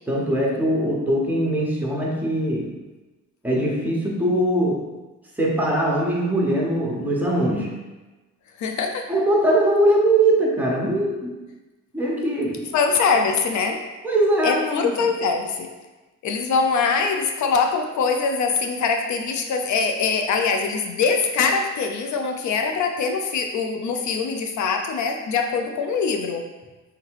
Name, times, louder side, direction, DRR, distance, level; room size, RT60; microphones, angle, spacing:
voice 1, 0.1-2.7 3.4-4.8 5.4-7.7 9.1-11.3 11.9-12.7 14.0-15.0, right 1 dB, 5° right, -3 dB, 1.1 m, -21 dB
voice 2, 8.6-9.1 12.7-13.8 14.4-15.7 16.2-26.4, left 5 dB, 70° left, 4 dB, 0.5 m, -23 dB
3.4 x 3.1 x 4.7 m, 1.2 s
cardioid pair, 90°, 30 cm